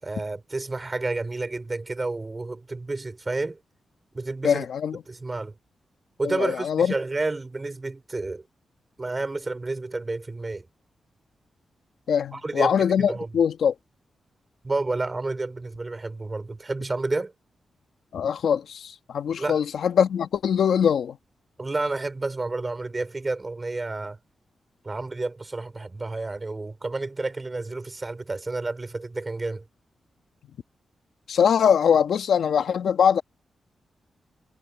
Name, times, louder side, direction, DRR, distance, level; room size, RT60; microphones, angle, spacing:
voice 1, 0.0-3.6 4.1-4.6 5.1-5.5 6.2-8.4 9.0-10.6 12.3-13.3 14.6-17.3 19.4-19.6 21.6-24.2 24.8-29.6, right 3 dB, 25° right, 4.6 m, -30 dB
voice 2, 4.4-5.0 6.2-6.9 12.1-13.7 18.1-21.2 31.3-33.2, left 7 dB, 80° left, 1.5 m, -22 dB
cardioid pair, 90°, 0 cm